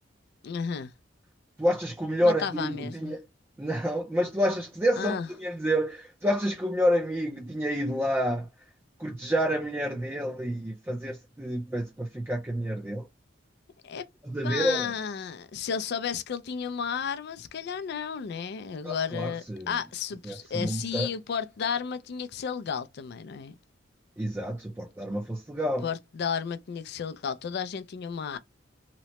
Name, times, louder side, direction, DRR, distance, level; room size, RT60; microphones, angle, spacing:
voice 1, 0.4-0.9 2.2-3.2 5.0-5.3 13.8-14.1 14.4-23.5 25.8-28.4, left 6 dB, 60° left, 0.4 m, -33 dB
voice 2, 1.6-3.2 3.6-8.5 9.0-13.1 14.2-14.9 18.8-19.7 20.2-21.1 24.2-25.8, equal, 10° right, 0.4 m, -28 dB
2.9 x 2.1 x 2.8 m
head